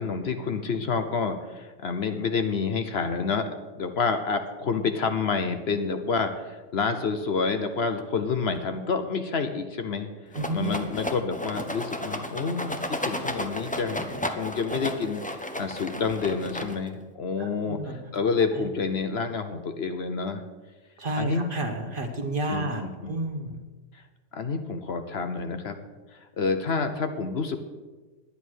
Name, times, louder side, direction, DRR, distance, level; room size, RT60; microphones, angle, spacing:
voice 1, 0.0-3.5 3.8-20.4 21.1-21.5 22.5-23.2 23.9-24.0 24.3-25.8 26.1-27.6, left 5 dB, 60° left, 7 dB, 1.0 m, -28 dB
Rattle, 10.3-17.0, left 1 dB, 10° left, 0.6 m, -33 dB
voice 2, 10.3-10.7 17.4-18.0 21.0-22.8 23.1-23.6, right 2 dB, 45° right, 4 dB, 1.4 m, -30 dB
10.5 x 9.9 x 6.3 m, 1.3 s
omnidirectional pair, 1.3 m